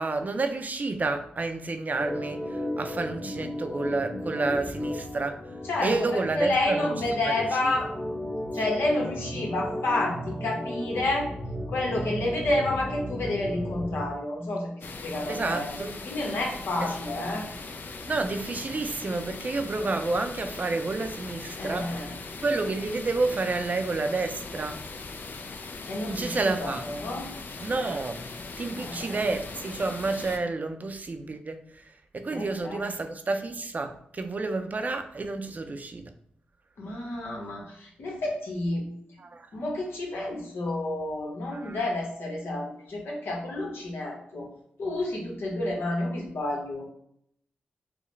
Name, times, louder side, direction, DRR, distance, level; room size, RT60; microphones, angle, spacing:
voice 1, 0.0-5.4 5.8-7.3 15.3-16.0 16.8-16.9 18.1-24.9 26.1-26.8 27.6-28.2 28.6-31.9 32.1-36.1 39.2-39.5 41.5-41.8, right 3 dB, 45° right, 0.5 m, -30 dB
Organ, 1.9-14.1, equal, 5° left, 0.9 m, -35 dB
voice 2, 5.7-7.9 8.5-11.3 11.7-15.7 16.0-17.4 21.6-22.1 25.8-27.3 28.8-29.2 32.3-32.9 36.8-38.9 39.5-44.5 44.8-46.9, left 2 dB, 85° left, 1.0 m, -30 dB
sound 1, 14.8-30.4, left 3 dB, 60° left, 0.4 m, -40 dB
4.6 x 2.1 x 3.2 m
cardioid pair, 50°, 4 cm